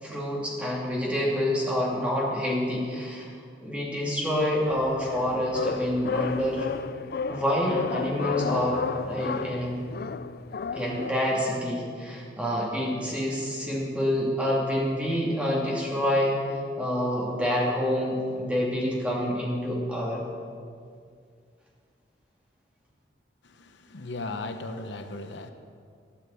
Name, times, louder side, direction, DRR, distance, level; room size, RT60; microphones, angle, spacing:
voice 1, 0.0-3.3 3.6-6.7 7.3-9.9 10.7-16.4 16.8-20.2, left 1 dB, 5° right, -4 dB, 2.6 m, -27 dB
sound 1, 4.7-11.1, left 5 dB, 50° left, 0.4 m, -33 dB
voice 2, 23.5-25.5, left 2 dB, 75° left, 7 dB, 0.9 m, -36 dB
13.0 x 8.7 x 8.3 m, 2.2 s
head